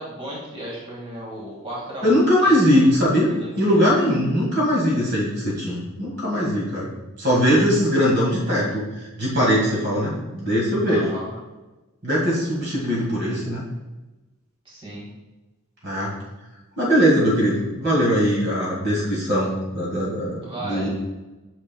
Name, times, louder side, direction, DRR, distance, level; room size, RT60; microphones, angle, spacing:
voice 1, 0.0-2.2 2.4-3.8 10.9-11.3 14.7-15.1 20.4-20.9, right 1 dB, 25° right, -5 dB, 1.8 m, -35 dB
voice 2, 2.0-3.3 3.6-6.9 7.2-8.8 9.2-11.1 12.0-13.6 15.8-16.1 16.8-20.9, equal, 50° right, -4 dB, 1.6 m, -20 dB
8.5 x 5.9 x 2.2 m, 1.1 s
head